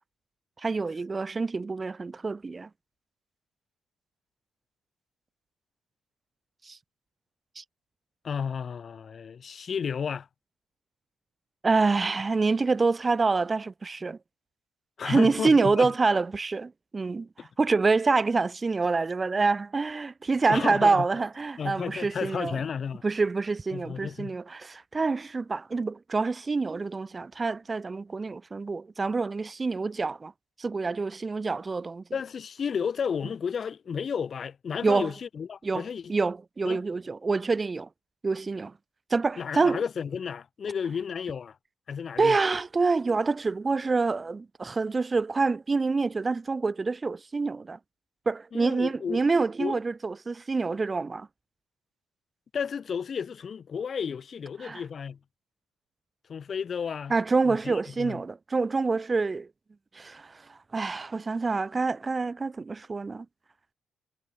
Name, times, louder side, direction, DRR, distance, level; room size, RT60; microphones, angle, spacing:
voice 1, 0.6-2.7 6.6-6.8 7.6-7.7 11.6-14.2 15.0-17.3 17.6-22.6 23.0-30.3 30.6-32.0 34.8-35.1 35.6-35.8 36.1-37.9 38.2-38.7 39.1-39.8 42.2-47.8 48.3-51.3 54.6-54.8 57.1-59.5 59.9-63.3, right 4 dB, 30° right, 2.0 m, -26 dB
voice 2, 8.2-10.3 15.0-15.9 17.4-17.5 20.5-21.1 21.6-23.0 23.7-24.4 32.1-36.1 36.6-36.8 39.4-41.6 41.9-42.4 48.5-49.2 49.6-49.8 52.5-55.2 56.3-57.1 57.4-58.2, left 6 dB, 50° left, 6.6 m, -32 dB
cardioid pair, 90°, 0 cm